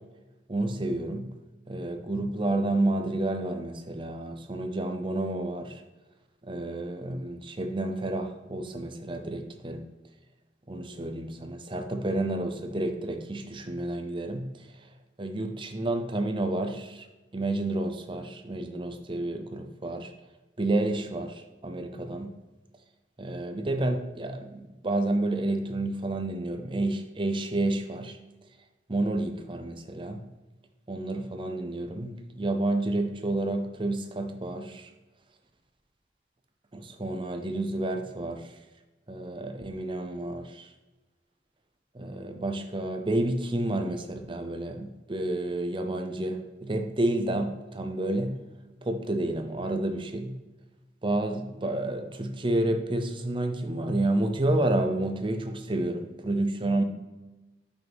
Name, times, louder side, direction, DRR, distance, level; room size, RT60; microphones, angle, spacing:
voice 1, 0.5-1.3 1.7-5.7 6.5-9.8 10.7-14.5 15.2-17.1 17.3-20.1 20.6-22.3 23.2-28.2 28.9-30.2 30.9-34.9 36.7-38.4 39.1-40.7 41.9-48.3 48.8-50.3 51.0-56.8, right 2 dB, 25° right, 6 dB, 0.6 m, -30 dB
6.0 x 5.7 x 3.5 m, 1.1 s
head